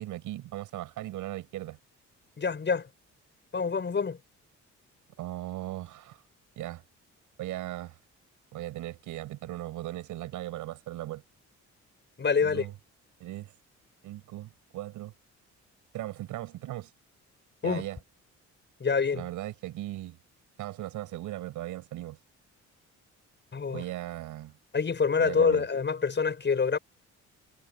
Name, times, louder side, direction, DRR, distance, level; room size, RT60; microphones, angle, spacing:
voice 1, 0.0-1.8 5.2-6.2 6.6-6.8 7.4-8.0 8.5-11.2 12.4-12.7 13.2-13.5 14.0-15.1 15.9-16.9 17.6-18.0 19.1-20.2 20.6-22.2 23.7-24.6 25.2-25.7, right 15 dB, 90° right, 6.8 m, -38 dB
voice 2, 2.4-2.9 3.5-4.2 12.2-12.7 17.6-17.8 18.8-19.2 23.5-23.8 24.7-26.8, left 5 dB, 35° left, 6.1 m, -26 dB
cardioid pair, 90°, 30 cm